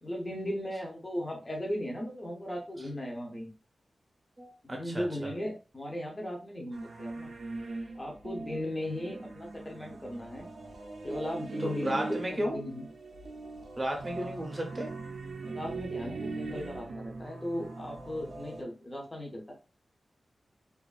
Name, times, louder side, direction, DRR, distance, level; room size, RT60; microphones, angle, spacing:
voice 1, 0.0-3.5 4.6-7.3 7.9-10.5 11.0-12.8 14.2-14.3 15.5-19.5, left 1 dB, 20° left, 0 dB, 0.6 m, -37 dB
voice 2, 4.4-5.0 11.6-12.6 13.8-14.9, equal, 25° right, 1 dB, 0.7 m, -33 dB
sound 1, 6.7-18.6, right 3 dB, 70° right, 0.4 m, -41 dB
2.4 x 2.3 x 2.4 m, 0.33 s
wide cardioid pair, 115°, 0 cm